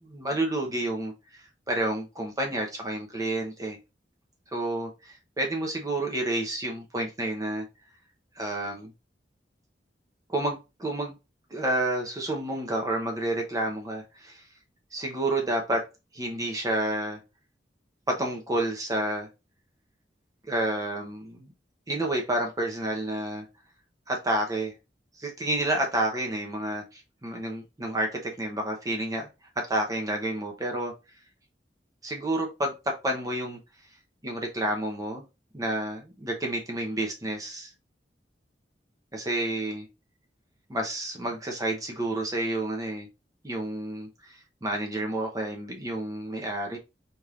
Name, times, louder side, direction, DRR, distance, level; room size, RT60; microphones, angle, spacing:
voice 1, 0.0-3.8 4.5-7.6 8.4-8.9 10.3-11.2 11.5-14.4 14.9-15.9 16.1-17.2 18.1-19.3 20.5-21.5 21.9-23.4 24.1-24.7 25.2-29.3 29.6-30.9 32.0-33.6 34.2-35.2 35.5-37.7 39.1-39.9 40.7-43.1 43.4-46.8, right 1 dB, 20° right, 0.8 m, -30 dB
4.3 x 3.4 x 2.4 m
head